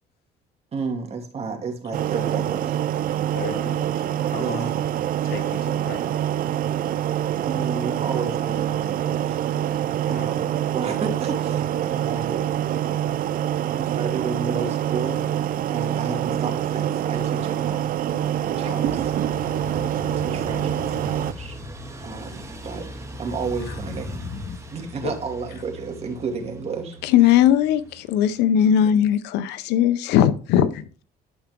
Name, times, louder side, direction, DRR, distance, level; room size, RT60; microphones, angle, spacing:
voice 1, 0.7-2.8 4.4-4.7 7.4-9.4 10.1-12.5 13.6-15.2 15.7-17.9 18.4-18.8 19.5-21.6 22.0-22.9 23.2-24.2 24.7-27.0, right 5 dB, 40° right, 2.6 m, -32 dB
sound 1, 1.9-21.3, right 11 dB, 55° right, 0.6 m, -25 dB
voice 2, 3.3-4.8 5.2-6.1 10.0-10.3 18.6-18.8 23.6-23.8 25.0-25.1, left 7 dB, 70° left, 1.8 m, -36 dB
sound 2, 17.1-28.9, right 1 dB, 15° right, 2.2 m, -42 dB
sound 3, 18.8-24.6, left 5 dB, 45° left, 1.0 m, -39 dB
voice 3, 27.0-31.0, left 10 dB, 90° left, 0.7 m, -19 dB
11.0 x 5.8 x 3.7 m
cardioid pair, 110°, 17 cm